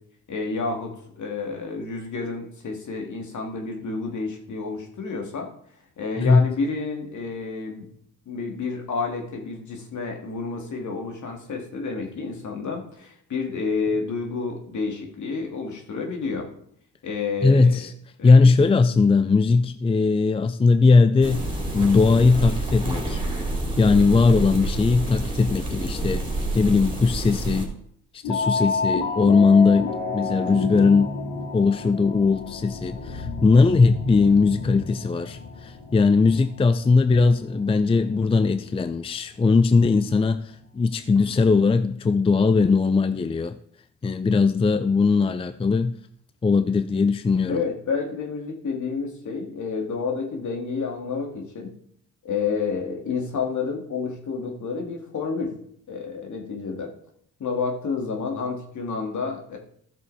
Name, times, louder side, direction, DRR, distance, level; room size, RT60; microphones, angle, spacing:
voice 1, 0.3-5.5 6.0-7.9 8.3-16.5 17.0-17.9 18.2-18.5 47.5-51.7 52.2-55.5 55.9-56.9 57.4-59.6, left 4 dB, 55° left, 2.6 m, -30 dB
voice 2, 6.2-6.5 17.4-17.9 18.2-21.5 21.7-23.2 23.8-26.3 26.5-27.7 28.1-31.1 31.5-40.4 40.7-43.6 44.0-46.0 46.4-47.6, left 4 dB, 15° left, 0.5 m, -19 dB
sound 1, 21.2-27.7, right 2 dB, 15° right, 3.5 m, -28 dB
sound 2, 28.2-38.9 39.7-39.8 41.1-41.4, left 4 dB, 75° left, 2.2 m, -31 dB
14.0 x 6.4 x 4.2 m
cardioid pair, 80°, 35 cm